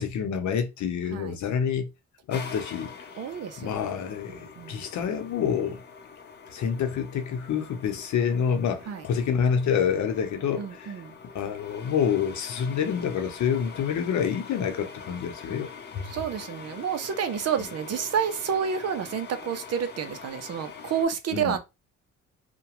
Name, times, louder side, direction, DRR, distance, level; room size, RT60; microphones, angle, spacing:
voice 1, 0.0-1.9 2.3-3.1 3.6-5.8 6.5-10.9 11.3-15.7 15.9-16.1 21.3-21.6, left 7 dB, 70° left, 0.8 m, -27 dB
sound 1, 2.3-21.0, left 5 dB, 35° left, 0.7 m, -44 dB
voice 2, 3.2-4.0 4.3-4.9 8.9-9.0 10.6-11.2 16.0-21.6, right 7 dB, 55° right, 0.6 m, -30 dB
2.9 x 2.2 x 2.9 m
cardioid pair, 90°, 30 cm